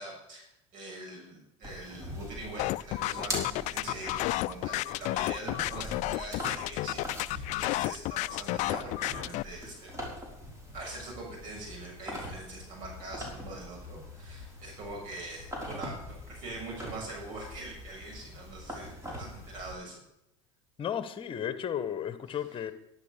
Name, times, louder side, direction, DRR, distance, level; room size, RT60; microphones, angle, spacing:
voice 1, 0.0-9.9 10.7-20.0 22.3-22.4, right 2 dB, 55° right, -1 dB, 7.0 m, -43 dB
sound 1, 1.6-19.7, left 1 dB, 20° right, 5.2 m, -43 dB
sound 2, 2.6-9.4, left 19 dB, 50° left, 0.4 m, -31 dB
voice 2, 20.8-22.7, left 9 dB, 35° left, 12 dB, 1.6 m, -34 dB
12.0 x 11.0 x 6.9 m, 0.81 s
hypercardioid pair, 100°, 16 cm